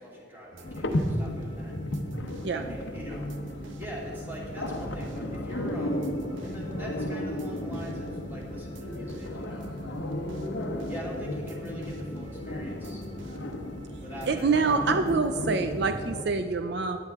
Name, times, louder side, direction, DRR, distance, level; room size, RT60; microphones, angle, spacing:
voice 1, 0.0-1.8 2.5-3.3 3.8-6.1 6.4-10.0 10.9-13.0 14.0-14.7, equal, 10° right, -4 dB, 2.8 m, -42 dB
sound 1, 0.5-15.5, right 1 dB, 90° right, 0.9 m, -48 dB
sound 2, 0.6-16.2, left 1 dB, 70° left, 1.0 m, -34 dB
voice 2, 14.3-17.0, right 4 dB, 60° right, 8 dB, 0.5 m, -26 dB
16.5 x 10.0 x 3.6 m, 2.6 s
head